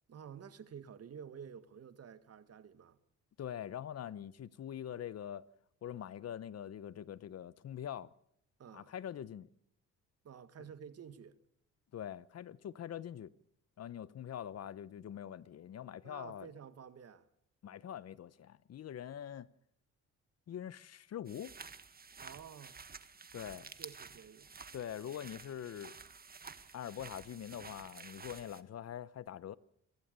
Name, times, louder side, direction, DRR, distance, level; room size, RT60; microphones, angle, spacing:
voice 1, 0.1-3.0 8.6-8.9 10.2-11.4 16.0-17.3 22.1-22.8 23.8-24.5, right 7 dB, 55° right, 1.9 m, -51 dB
voice 2, 3.4-5.4 5.8-8.1 8.7-9.5 11.9-13.3 13.8-16.5 17.6-19.5 20.5-21.6 23.3-23.7 24.7-26.0 26.7-29.6, left 10 dB, 55° left, 0.9 m, -44 dB
sound 1, 21.3-28.6, right 5 dB, 30° right, 1.6 m, -52 dB
23.5 x 16.5 x 6.8 m
cardioid pair, 90°, 30 cm